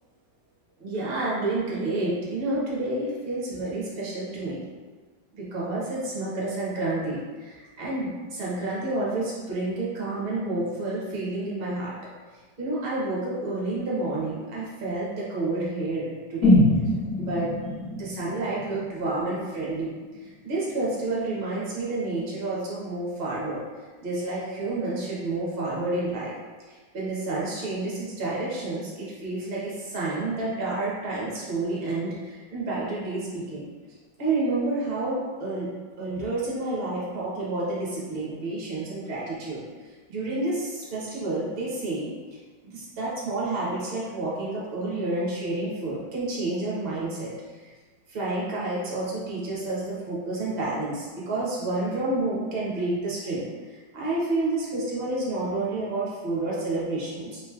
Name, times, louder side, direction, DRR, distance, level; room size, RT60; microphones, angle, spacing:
voice 1, 0.8-4.6 5.3-11.9 12.6-16.6 17.2-17.5 17.9-19.9 20.2-23.6 24.0-26.3 26.7-33.6 34.2-35.7 36.0-39.6 40.1-42.1 42.6-47.3 48.1-57.4, right 2 dB, 40° right, -6 dB, 0.9 m, -29 dB
sound 1, 16.4-20.4 20.7-20.8, left 1 dB, 60° left, 1.9 m, -24 dB
3.7 x 3.0 x 2.3 m, 1.4 s
omnidirectional pair, 1.9 m